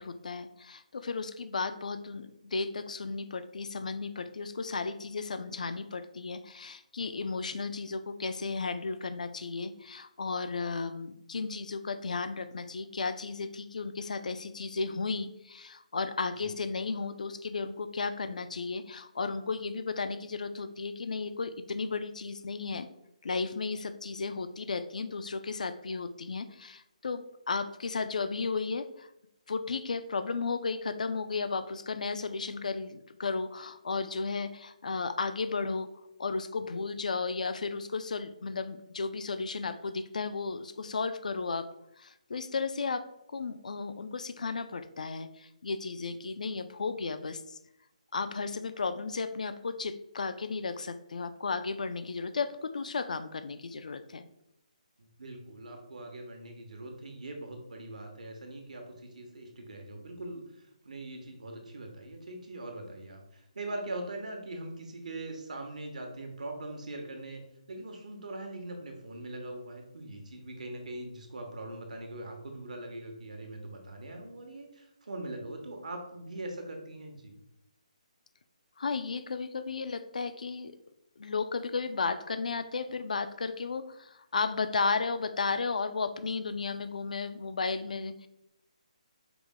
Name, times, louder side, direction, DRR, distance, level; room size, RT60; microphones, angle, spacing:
voice 1, 0.0-22.9 23.2-29.1 29.5-41.6 42.0-47.6 48.1-54.3 78.8-80.7 81.2-88.3, left 4 dB, 75° left, 11 dB, 0.4 m, -34 dB
voice 2, 55.0-67.4 67.7-77.3, right 2 dB, 75° right, 3 dB, 1.0 m, -42 dB
4.8 x 2.1 x 3.6 m, 0.82 s
hypercardioid pair, 170°, 4 cm